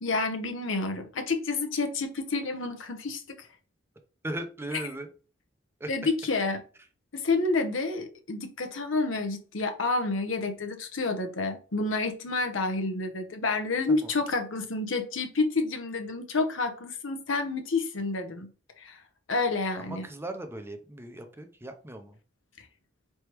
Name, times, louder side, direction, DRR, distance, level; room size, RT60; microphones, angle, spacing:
voice 1, 0.0-3.5 5.9-6.6 7.1-18.5 18.8-19.0 19.3-20.0, left 3 dB, 80° left, 0.9 m, -29 dB
voice 2, 4.2-5.1 5.8-5.9 13.9-14.1 19.9-22.2, right 1 dB, 10° right, 0.5 m, -38 dB
4.4 x 3.4 x 3.0 m
head